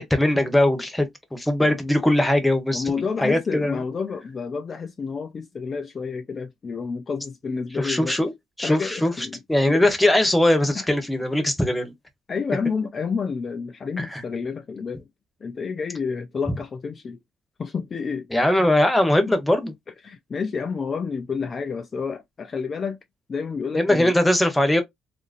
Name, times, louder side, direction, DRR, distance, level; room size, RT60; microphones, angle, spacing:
voice 1, 0.0-3.8 7.8-8.3 8.6-11.9 14.0-14.2 18.3-19.7 23.7-24.8, left 1 dB, 10° left, 0.9 m, -21 dB
voice 2, 2.7-8.2 8.6-9.8 10.7-10.9 12.3-15.0 15.4-17.2 17.6-18.3 19.9-23.0 23.3-24.1, left 5 dB, 40° left, 0.4 m, -30 dB
2.7 x 2.5 x 2.5 m
cardioid pair, 90°, 0 cm